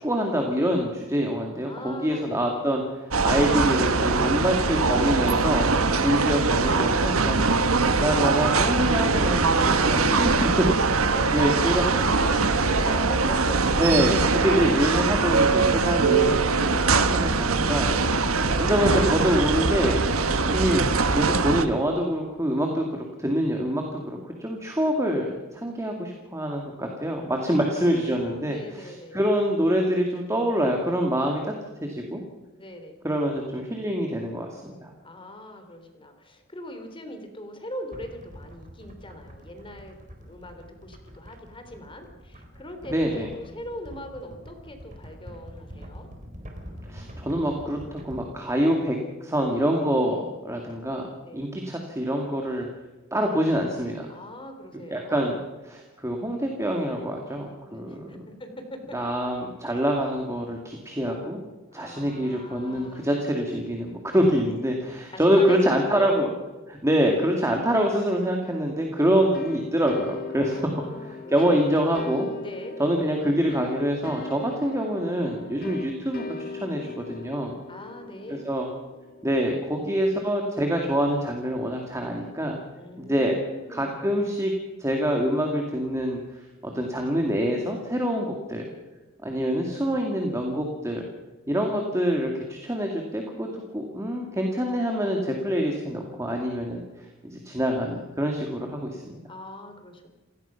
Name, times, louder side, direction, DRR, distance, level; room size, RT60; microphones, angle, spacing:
voice 1, 0.0-5.7 6.0-7.4 8.0-11.0 11.3-11.8 13.8-16.4 17.1-17.9 18.3-20.0 20.5-20.8 21.1-31.5 31.8-32.2 33.0-34.9 42.9-43.3 46.9-51.1 51.3-52.7 53.1-54.1 54.9-55.4 55.6-58.2 58.9-61.4 61.7-66.3 66.7-70.7 71.1-72.3 72.8-77.6 78.3-78.7 79.2-82.6 83.1-83.4 83.7-84.5 84.8-86.2 86.6-88.7 89.2-91.1 91.5-96.8 97.2-99.2, equal, 15° right, 1 dB, 2.3 m, -25 dB
voice 2, 1.6-2.7 9.7-13.6 16.6-16.9 18.0-18.4 27.4-29.2 32.6-33.0 35.0-46.1 50.0-50.2 51.2-51.6 54.1-55.5 57.7-59.1 61.7-63.2 65.1-66.2 70.4-71.8 72.4-72.8 77.7-78.5 82.7-84.3 91.5-91.9 99.3-100.1, left 1 dB, 25° left, 6 dB, 3.4 m, -41 dB
sound 1, 3.1-21.7, right 4 dB, 80° right, 1.4 m, -22 dB
sound 2, 37.9-48.2, equal, 35° right, 4.3 m, -44 dB
sound 3, 69.3-79.8, left 3 dB, 45° left, 2.6 m, -39 dB
29.0 x 17.0 x 5.9 m, 1.2 s
head